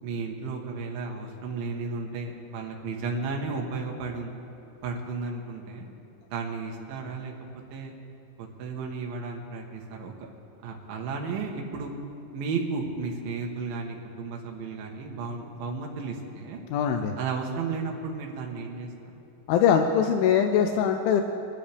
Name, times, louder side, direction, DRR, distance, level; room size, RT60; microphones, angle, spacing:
voice 1, 0.0-4.3 4.8-5.9 6.3-7.3 7.7-7.9 8.4-10.3 10.6-11.9 12.3-16.6 17.2-18.9, right 4 dB, 80° right, 0 dB, 3.0 m, -33 dB
voice 2, 16.7-17.2 19.5-21.2, left 8 dB, 85° left, 5 dB, 2.4 m, -22 dB
22.0 x 12.5 x 3.5 m, 2.7 s
omnidirectional pair, 4.1 m